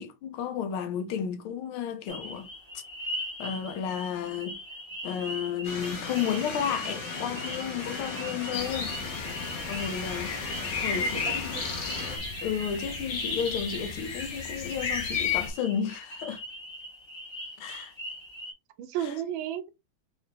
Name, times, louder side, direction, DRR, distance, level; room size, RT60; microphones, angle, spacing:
voice 1, 0.0-2.5 3.4-4.6 5.0-9.0 9.7-10.3 10.8-11.3 12.4-16.4 17.6-17.9 19.0-19.1, left 8 dB, 85° left, 1.6 m, -32 dB
sound 1, 2.1-18.5, equal, 25° left, 0.6 m, -41 dB
sound 2, 5.6-12.2, left 4 dB, 65° left, 2.1 m, -37 dB
sound 3, 8.5-15.5, left 5 dB, 50° left, 1.4 m, -33 dB
voice 2, 10.9-11.7 18.8-19.7, right 10 dB, 75° right, 1.3 m, -34 dB
4.5 x 2.8 x 3.3 m
omnidirectional pair, 2.3 m